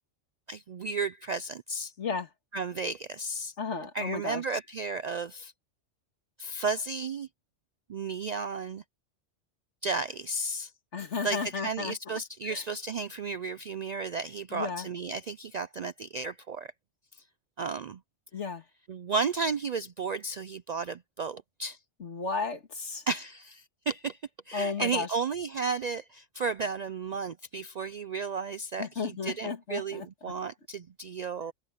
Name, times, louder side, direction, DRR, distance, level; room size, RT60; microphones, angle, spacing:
voice 1, 0.5-1.9 2.5-3.5 3.9-5.5 6.4-7.3 7.9-8.8 9.8-10.7 11.2-16.7 17.2-17.3 17.6-18.0 18.9-21.8 23.1-24.2 24.5-31.5, right 4 dB, 60° right, 0.4 m, -33 dB
voice 2, 2.0-2.3 3.6-4.4 10.9-11.9 12.5-12.6 14.5-14.9 18.3-18.6 22.0-23.0 24.5-25.1 28.8-30.1, left 4 dB, 75° left, 2.3 m, -33 dB
omnidirectional pair, 1.2 m